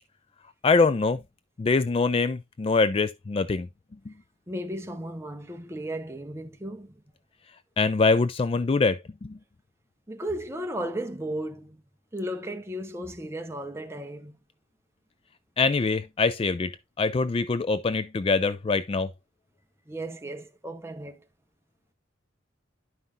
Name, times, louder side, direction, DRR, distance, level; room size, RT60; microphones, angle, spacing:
voice 1, 0.6-1.2 1.6-3.7 4.1-4.2 7.8-9.3 15.6-19.1, left 4 dB, 30° left, 0.3 m, -24 dB
voice 2, 4.5-7.0 10.1-11.8 12.1-14.4 19.9-21.2, right 1 dB, 15° right, 0.9 m, -35 dB
11.0 x 5.6 x 2.5 m
head